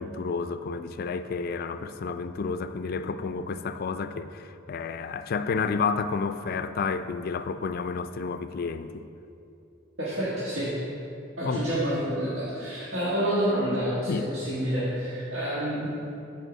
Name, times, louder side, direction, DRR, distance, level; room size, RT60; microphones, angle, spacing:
voice 1, 0.0-9.1 11.5-11.7 14.1-14.3, left 5 dB, 50° left, 0.3 m, -30 dB
voice 2, 10.0-10.7 11.4-15.9, equal, 85° right, 1.6 m, -28 dB
8.1 x 4.6 x 6.3 m
head